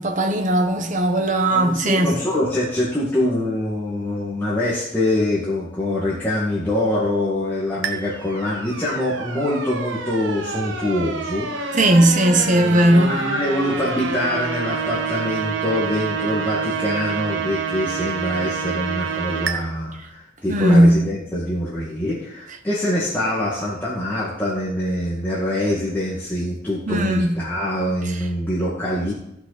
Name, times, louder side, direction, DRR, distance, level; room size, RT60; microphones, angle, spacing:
voice 1, 0.0-2.1 11.7-13.2 20.5-20.9 26.9-27.3, right 1 dB, 45° right, 1.2 m, -17 dB
voice 2, 1.5-11.8 12.3-29.1, left 1 dB, 10° left, 2.0 m, -24 dB
sound 1, 7.8-19.6, right 5 dB, 85° right, 1.1 m, -28 dB
15.0 x 6.0 x 4.2 m
head